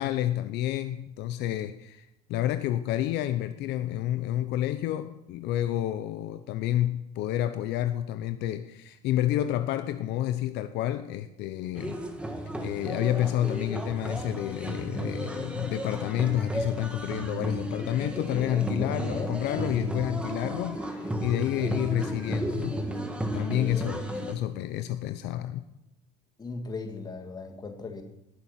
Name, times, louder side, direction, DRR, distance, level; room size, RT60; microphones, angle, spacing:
voice 1, 0.0-12.0 12.6-22.8 23.3-25.6, left 12 dB, 65° left, 10 dB, 0.7 m, -29 dB
sound 1, 11.8-24.3, right 1 dB, 5° right, 1.6 m, -33 dB
voice 2, 23.6-23.9 26.4-28.0, left 4 dB, 20° left, 5 dB, 1.9 m, -38 dB
19.5 x 7.1 x 5.8 m, 0.87 s
cardioid pair, 135°, 19 cm